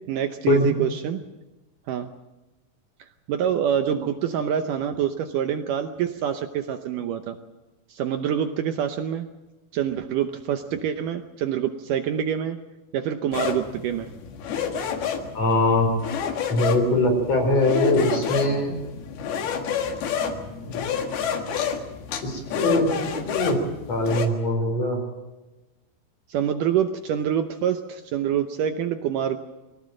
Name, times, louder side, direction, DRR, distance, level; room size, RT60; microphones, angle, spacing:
voice 1, 0.1-1.2 1.9-2.1 3.3-7.4 7.9-9.3 9.7-12.6 12.9-14.1 26.3-29.4, right 9 dB, 70° right, 7 dB, 2.2 m, -26 dB
sound 1, 13.3-24.3, left 7 dB, 90° left, 3.7 m, -29 dB
voice 2, 15.3-15.9 16.5-18.7 20.6-20.9 22.2-22.9 23.3-23.6 23.9-25.0, left 2 dB, 45° left, 3 dB, 5.6 m, -22 dB
23.5 x 17.5 x 7.7 m, 1.1 s
omnidirectional pair, 4.3 m